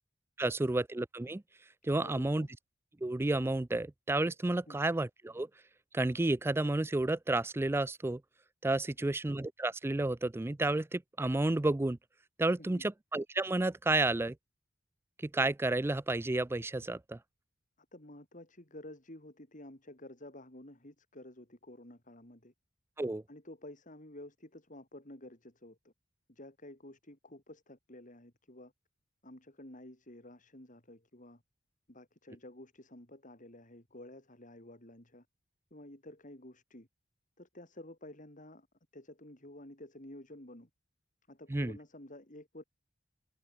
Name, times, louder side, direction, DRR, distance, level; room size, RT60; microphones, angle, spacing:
voice 1, 0.4-1.4 1.8-2.5 3.0-5.5 5.9-8.2 8.6-12.0 12.4-14.4 15.2-17.2 23.0-23.2 41.5-41.8, right 2 dB, 15° right, 0.4 m, -31 dB
voice 2, 2.0-2.5 4.7-4.8 9.0-9.1 12.6-12.9 17.9-22.5 23.3-25.9 26.3-28.7 29.2-31.4 31.9-35.3 35.7-36.9 37.4-38.7 38.9-40.7 41.3-42.6, left 1 dB, 45° left, 5.4 m, -51 dB
head